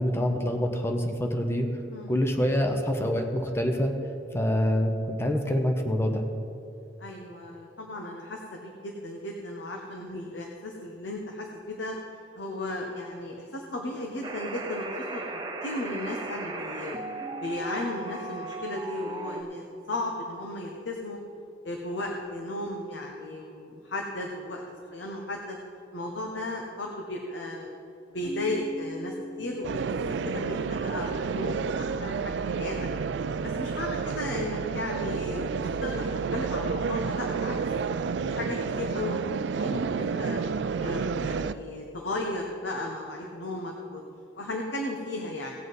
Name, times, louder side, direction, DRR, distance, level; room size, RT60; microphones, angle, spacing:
voice 1, 0.0-1.7 2.1-3.9 4.3-6.2, equal, 15° left, 3 dB, 0.9 m, -26 dB
voice 2, 7.0-12.0 12.4-15.3 15.6-17.0 17.4-21.2 21.6-24.6 24.9-25.6 25.9-27.7 28.1-29.9 30.2-32.7 33.4-36.0 36.3-37.6 38.3-39.3 39.5-40.4 40.8-44.0 44.3-45.5, left 1 dB, 80° left, 0 dB, 1.1 m, -35 dB
sound 1, 14.2-19.4, right 2 dB, 25° right, 0.8 m, -36 dB
Keyboard (musical), 28.2-30.9, equal, 50° left, 1.0 m, -41 dB
sound 2, 29.6-41.5, right 5 dB, 75° right, 0.4 m, -30 dB
18.0 x 7.5 x 4.1 m, 2.6 s
head